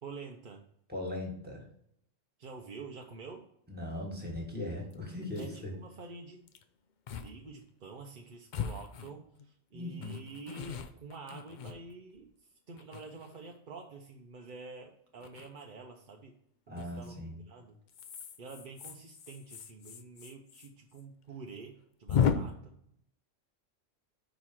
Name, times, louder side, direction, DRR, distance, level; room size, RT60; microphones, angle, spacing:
voice 1, 0.0-0.6 2.4-3.5 5.4-6.4 7.2-16.4 16.8-17.2 17.5-17.8 18.4-22.7, right 4 dB, 50° right, 2 dB, 0.7 m, -48 dB
voice 2, 0.9-1.6 3.7-5.7 9.7-10.2 16.7-17.4, left 1 dB, 5° right, 0 dB, 1.7 m, -39 dB
sound 1, 4.3-4.4 4.9-5.0 5.2-5.6 6.5-6.6 7.1-7.3 7.6-7.7 8.5-9.5 10.0-12.2 12.8-13.6 15.2-15.5 16.8-17.1 17.9-20.7 20.9-21.0 21.3-21.4 22.1-22.3, left 7 dB, 55° left, 0.5 m, -35 dB
5.2 x 4.5 x 5.9 m, 0.70 s
omnidirectional pair, 1.4 m